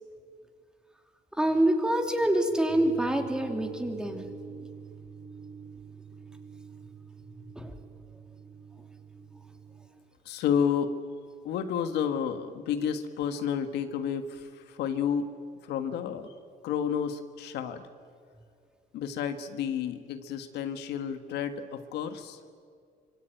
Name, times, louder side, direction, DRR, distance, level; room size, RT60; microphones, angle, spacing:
voice 1, 1.3-4.3 7.6-7.7, right 1 dB, 5° right, 4 dB, 3.0 m, -26 dB
sound 1, 2.7-9.9, right 6 dB, 30° right, 5.4 m, -46 dB
voice 2, 10.2-10.9 11.4-15.3 15.6-16.3 16.6-17.9 18.9-22.4, left 8 dB, 80° left, 8 dB, 1.7 m, -31 dB
25.5 x 22.5 x 9.2 m, 2.1 s
cardioid pair, 110°, 17 cm